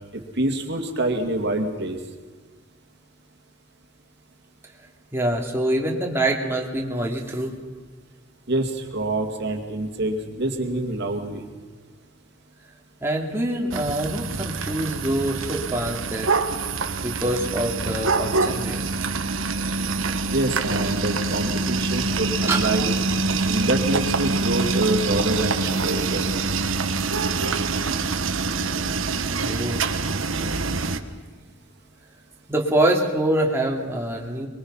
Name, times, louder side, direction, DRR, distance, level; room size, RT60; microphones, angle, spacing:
voice 1, 0.1-2.0 8.5-11.5 20.3-22.9 23.4-26.2, right 2 dB, 60° right, 4 dB, 2.5 m, -26 dB
voice 2, 5.1-7.6 13.0-16.3 17.0-18.9 22.4-22.7 29.4-29.8 32.5-34.5, right 1 dB, 10° right, -1 dB, 2.9 m, -25 dB
sound 1, 13.7-31.0, right 3 dB, 90° right, 1.3 m, -25 dB
23.5 x 23.0 x 5.7 m, 1.5 s
head